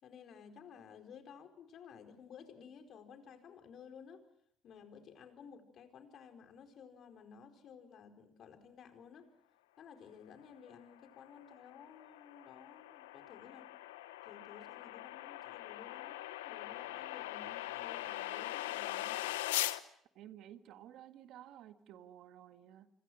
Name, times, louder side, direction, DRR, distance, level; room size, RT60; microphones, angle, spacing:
voice 1, 0.0-4.2 4.6-9.3 9.8-13.7 14.2-19.3, left 7 dB, 60° left, 7 dB, 4.7 m, -55 dB
sound 1, 11.1-19.8, left 16 dB, 85° left, 1.0 m, -41 dB
voice 2, 20.2-22.9, right 11 dB, 65° right, 9 dB, 1.8 m, -54 dB
27.5 x 26.5 x 6.3 m, 0.68 s
hypercardioid pair, 60°, 0 cm